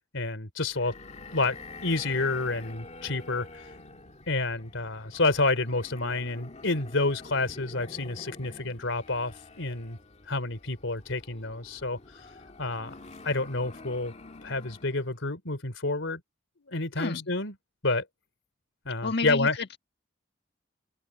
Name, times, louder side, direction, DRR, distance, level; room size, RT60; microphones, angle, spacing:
voice 1, 0.1-0.9 1.3-1.6 1.8-3.7 4.3-10.0 10.3-12.2 12.6-13.0 13.2-14.1 14.4-16.2 16.6-17.5 17.8-18.0 18.8-19.6, left 2 dB, 90° left, 3.3 m, -29 dB
sound 1, 0.7-15.2, left 3 dB, 35° left, 2.0 m, -47 dB
voice 2, 17.0-17.3 19.0-19.8, left 3 dB, 60° left, 1.7 m, -31 dB
head